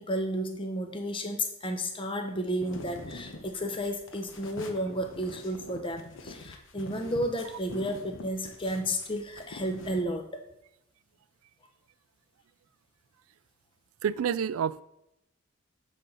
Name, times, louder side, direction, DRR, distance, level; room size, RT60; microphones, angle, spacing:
voice 1, 0.0-10.3, equal, 25° left, 0.8 m, -32 dB
sound 1, 2.4-10.0, left 2 dB, 65° left, 0.9 m, -45 dB
voice 2, 14.0-14.8, right 8 dB, 80° right, 0.3 m, -28 dB
8.3 x 4.3 x 5.5 m
head